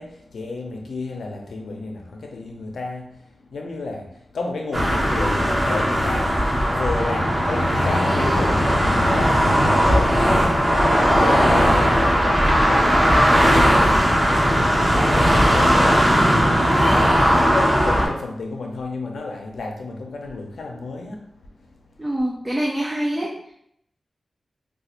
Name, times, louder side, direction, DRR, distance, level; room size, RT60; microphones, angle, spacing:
voice 1, 0.0-21.7, left 3 dB, 90° left, 1 dB, 0.6 m, -32 dB
sound 1, 4.7-18.1, equal, 30° right, 1.1 m, -18 dB
voice 2, 22.0-23.5, right 1 dB, 10° right, -3 dB, 0.5 m, -25 dB
4.1 x 2.4 x 2.5 m, 0.74 s
wide cardioid pair, 90°, 0 cm